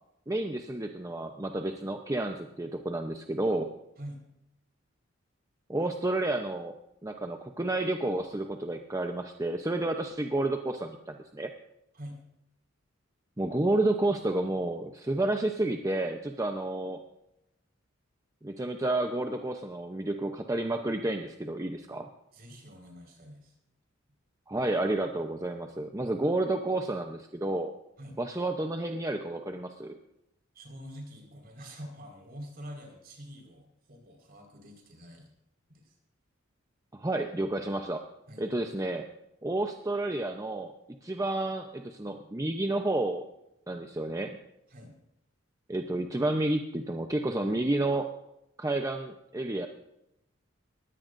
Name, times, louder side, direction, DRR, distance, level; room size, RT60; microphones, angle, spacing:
voice 1, 0.3-3.7 5.7-6.8 7.0-11.5 13.4-17.0 18.4-22.1 24.5-27.7 28.2-30.0 36.9-38.0 38.4-39.1 39.4-40.7 41.0-43.2 43.7-44.4 45.7-48.1 48.6-49.7, right 2 dB, 15° right, 4 dB, 0.8 m, -30 dB
voice 2, 22.3-23.6 28.0-28.2 30.5-35.3 35.7-35.9 38.3-38.4 44.7-44.9, equal, 50° right, 1 dB, 4.8 m, -46 dB
21.0 x 16.5 x 2.6 m, 0.86 s
head